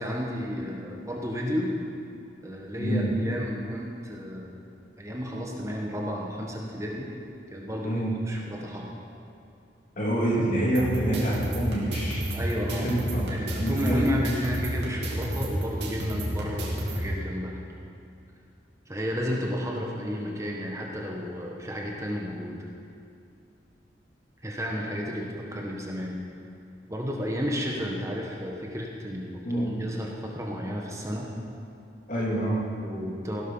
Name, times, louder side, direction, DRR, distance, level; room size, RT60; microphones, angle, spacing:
voice 1, 0.0-1.7 2.4-4.5 5.0-7.1 7.5-8.9 12.3-12.9 13.2-17.6 18.9-22.6 24.4-26.2 26.9-31.3 32.8-33.4, equal, 20° right, -1 dB, 1.4 m, -32 dB
voice 2, 2.8-3.1 7.8-8.1 10.0-12.2 12.7-14.1 29.4-29.7 32.1-32.6, right 1 dB, 50° left, -3 dB, 3.0 m, -26 dB
sound 1, 10.7-17.0, right 1 dB, 85° right, 3.0 m, -31 dB
16.0 x 12.0 x 5.7 m, 2.5 s
head